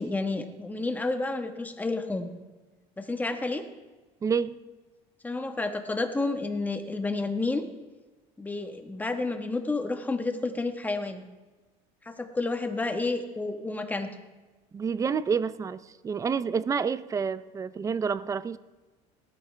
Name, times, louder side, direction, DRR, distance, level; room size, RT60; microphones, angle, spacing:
voice 1, 0.0-2.3 3.0-3.6 5.2-7.6 8.4-11.3 12.0-14.1, left 3 dB, 10° left, 1.2 m, -30 dB
voice 2, 4.2-4.6 14.7-18.6, right 6 dB, 20° right, 0.4 m, -29 dB
19.0 x 13.0 x 3.3 m
cardioid pair, 125°, 15 cm